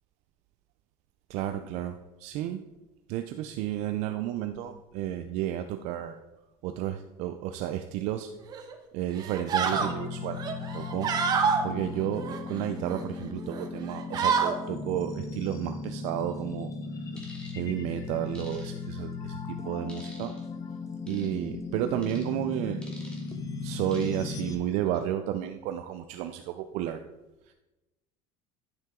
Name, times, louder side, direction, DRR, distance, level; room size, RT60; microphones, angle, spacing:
voice 1, 1.3-2.6 3.1-6.2 6.6-8.3 8.9-11.1 11.6-16.7 17.5-20.3 21.1-22.8 23.6-27.0 27.5-27.6, right 11 dB, 60° right, 7 dB, 0.5 m, -32 dB
sound 1, 8.5-8.7 9.2-9.9 10.4-11.6 12.2-13.0 13.5-13.7 13.9-14.6, right 6 dB, 30° right, 1.1 m, -27 dB
sound 2, 9.7-24.5, left 4 dB, 25° left, 0.8 m, -37 dB
sound 3, 17.2-17.5 18.3-19.0 19.9-20.4 21.1-21.3 22.0-22.3 22.8-23.3 23.9-24.3 24.8-25.0, equal, 10° left, 2.3 m, -50 dB
10.5 x 8.7 x 3.8 m, 1.0 s
cardioid pair, 160°, 13 cm